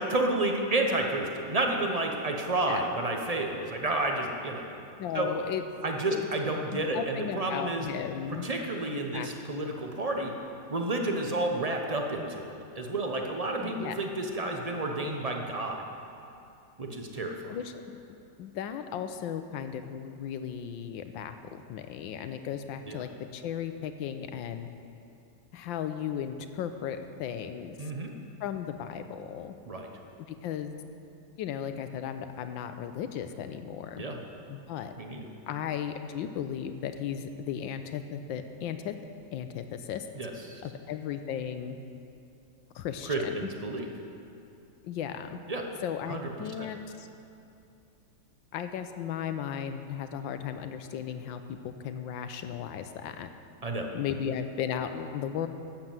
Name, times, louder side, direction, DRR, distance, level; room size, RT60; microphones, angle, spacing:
voice 1, 0.1-4.7 5.1-5.3 5.8-7.9 8.4-10.3 10.7-15.8 16.8-17.3 22.9-23.0 27.8-28.1 29.7-29.9 34.0-34.2 35.0-35.3 40.2-40.6 43.1-43.9 45.5-45.6 46.1-46.2 46.6-46.7 53.6-53.9, right 2 dB, 35° right, 2 dB, 0.6 m, -30 dB
voice 2, 5.0-5.6 6.1-6.3 6.7-8.5 9.1-9.3 13.6-14.0 17.5-24.7 25.5-27.9 28.4-29.5 30.3-30.7 31.4-34.0 34.5-34.9 35.5-38.9 39.3-40.1 40.6-41.8 42.7-43.5 44.8-45.4 45.8-47.1 48.5-53.3 53.9-55.5, left 9 dB, 90° left, 8 dB, 1.4 m, -36 dB
11.5 x 7.9 x 7.5 m, 2.6 s
omnidirectional pair, 2.0 m